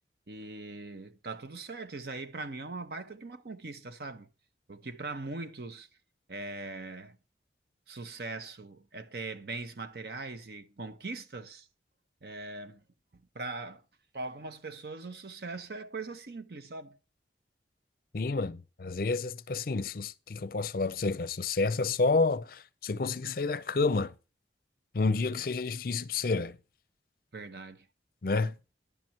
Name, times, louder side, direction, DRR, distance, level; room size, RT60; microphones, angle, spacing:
voice 1, 0.3-4.3 4.7-5.9 6.3-7.2 7.9-11.7 12.2-12.8 13.1-13.8 14.1-17.0 27.3-27.9, right 3 dB, 60° right, 0.8 m, -41 dB
voice 2, 18.1-24.1 24.9-26.6 28.2-28.5, left 3 dB, 55° left, 0.5 m, -29 dB
11.0 x 7.6 x 4.5 m
head